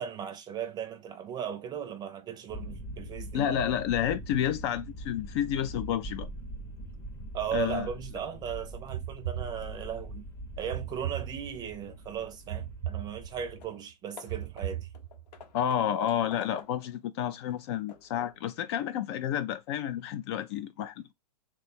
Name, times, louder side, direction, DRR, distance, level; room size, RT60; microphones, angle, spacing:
voice 1, 0.0-3.5 7.3-10.3 10.6-14.9, right 8 dB, 20° right, 0.6 m, -37 dB
sound 1, 2.5-13.7, right 1 dB, 10° left, 0.7 m, -43 dB
voice 2, 3.3-6.3 7.5-7.9 15.5-21.1, left 10 dB, 40° left, 0.4 m, -30 dB
sound 2, 8.9-10.1 10.7-11.9 12.5-13.6 14.3-15.4, right 11 dB, 65° right, 0.5 m, -38 dB
Hammer / Wood, 13.2-13.3 13.6-13.8 14.2-17.0 17.5-18.5, left 7 dB, 80° left, 0.9 m, -50 dB
3.2 x 2.3 x 4.1 m
hypercardioid pair, 130°, 21 cm